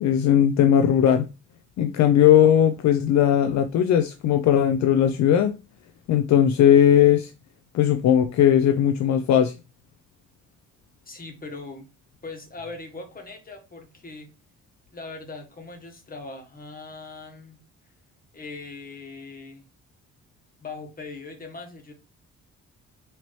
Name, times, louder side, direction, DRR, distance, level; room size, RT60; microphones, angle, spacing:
voice 1, 0.0-1.3 1.8-5.5 6.1-7.3 7.7-9.5, left 10 dB, 65° left, 0.5 m, -18 dB
voice 2, 11.0-11.9 12.2-14.3 14.9-17.6 18.3-19.7 20.6-21.9, left 3 dB, 30° left, 1.3 m, -40 dB
4.1 x 2.8 x 3.1 m
cardioid pair, 90°, 30 cm